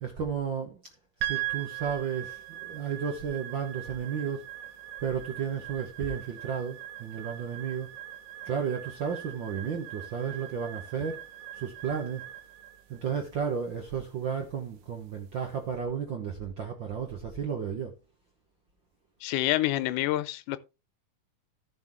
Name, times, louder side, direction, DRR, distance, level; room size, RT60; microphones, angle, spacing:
voice 1, 0.0-0.8 1.2-4.4 5.0-7.9 8.4-11.2 11.5-12.2 12.9-17.9, right 7 dB, 65° right, 1.1 m, -33 dB
sound 1, 1.2-15.6, right 14 dB, 85° right, 2.8 m, -41 dB
voice 2, 19.2-20.6, left 15 dB, 80° left, 2.2 m, -27 dB
14.5 x 6.2 x 3.0 m
omnidirectional pair, 3.7 m